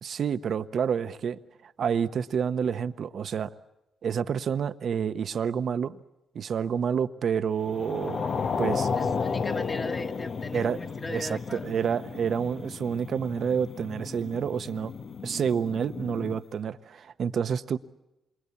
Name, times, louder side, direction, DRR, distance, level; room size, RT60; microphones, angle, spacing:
voice 1, 0.0-3.5 4.0-6.0 6.3-8.3 8.6-8.9 10.5-14.9 15.2-17.8, right 7 dB, 65° right, 11 dB, 1.0 m, -29 dB
sound 1, 7.7-16.4, left 5 dB, 60° left, 1.3 m, -33 dB
voice 2, 8.9-11.7, left 2 dB, 30° left, 5 dB, 1.9 m, -38 dB
27.5 x 24.0 x 8.5 m, 0.94 s
supercardioid pair, 65°, 0 cm